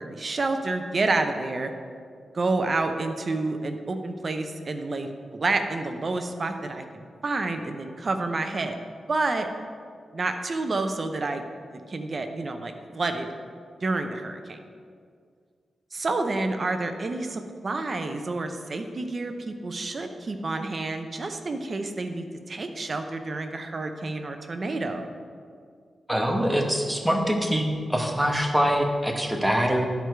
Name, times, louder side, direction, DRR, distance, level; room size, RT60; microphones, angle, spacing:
voice 1, 0.0-1.7 2.3-8.8 9.1-9.5 10.1-11.4 11.7-13.3 13.8-14.6 15.9-25.1, right 3 dB, 45° right, 6 dB, 0.7 m, -29 dB
voice 2, 26.1-29.9, equal, 5° right, 1 dB, 1.0 m, -24 dB
11.5 x 4.7 x 4.5 m, 2.1 s
wide cardioid pair, 95°, 0 cm